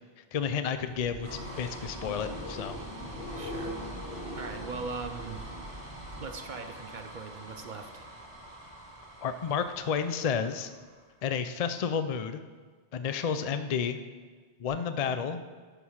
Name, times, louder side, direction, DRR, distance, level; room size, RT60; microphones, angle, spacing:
voice 1, 0.3-2.8 9.2-10.7 11.2-12.4 12.9-14.0 14.6-15.4, left 7 dB, 55° left, 10 dB, 0.4 m, -31 dB
sound 1, 0.7-11.2, right 1 dB, 30° right, 1.7 m, -44 dB
sound 2, 0.9-6.7 7.0-7.6 14.7-14.8, left 1 dB, 35° left, 2.2 m, -43 dB
voice 2, 3.4-3.8 4.4-5.5 6.2-8.1, right 4 dB, 50° right, 6 dB, 0.7 m, -40 dB
12.0 x 4.8 x 5.6 m, 1.5 s
omnidirectional pair, 1.2 m